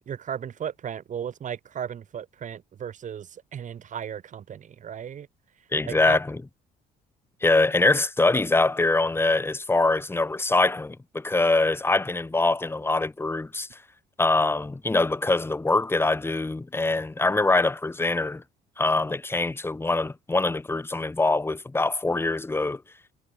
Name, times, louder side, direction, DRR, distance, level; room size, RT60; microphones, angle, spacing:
voice 1, 0.0-5.3 5.8-6.2, right 8 dB, 45° right, 5.4 m, -35 dB
voice 2, 5.7-6.4 7.4-13.7 14.2-18.4 18.8-22.8, left 2 dB, 15° left, 2.1 m, -23 dB
cardioid pair, 110°, 17 cm